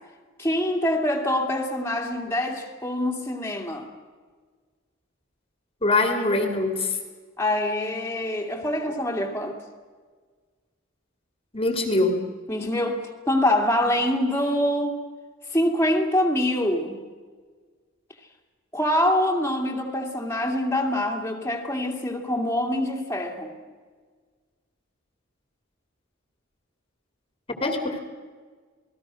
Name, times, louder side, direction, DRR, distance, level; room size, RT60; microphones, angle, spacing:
voice 1, 0.4-3.9 7.4-9.6 12.5-15.0 15.5-17.1 18.7-23.5, left 1 dB, 10° left, 0 dB, 2.4 m, -25 dB
voice 2, 5.8-7.0 11.5-12.2 27.6-28.0, left 2 dB, 30° left, 5 dB, 2.4 m, -23 dB
28.0 x 19.5 x 6.3 m, 1.5 s
head